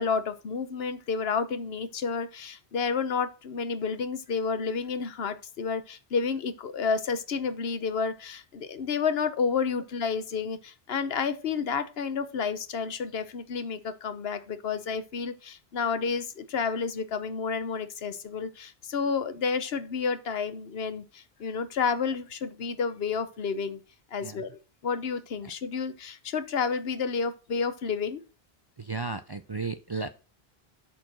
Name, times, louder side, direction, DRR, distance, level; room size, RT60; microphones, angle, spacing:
voice 1, 0.0-23.8 24.1-28.2, left 5 dB, 75° left, 12 dB, 1.1 m, -30 dB
voice 2, 28.8-30.1, right 4 dB, 35° right, 10 dB, 0.4 m, -34 dB
8.5 x 4.4 x 6.2 m, 0.33 s
omnidirectional pair, 1.0 m